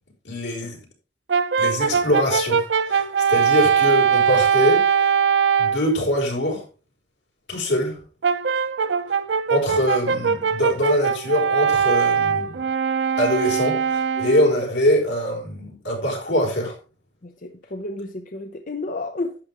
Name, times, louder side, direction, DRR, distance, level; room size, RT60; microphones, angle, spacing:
voice 1, 0.2-0.8 1.6-5.1 5.6-6.6 7.5-8.0 9.5-12.6 13.2-16.7, equal, 85° left, 4.9 m, -23 dB
Brass instrument, 1.3-5.9 8.2-14.6, right 7 dB, 85° right, 0.6 m, -21 dB
voice 2, 17.2-19.4, left 2 dB, 50° left, 0.8 m, -31 dB
11.5 x 8.6 x 3.5 m
head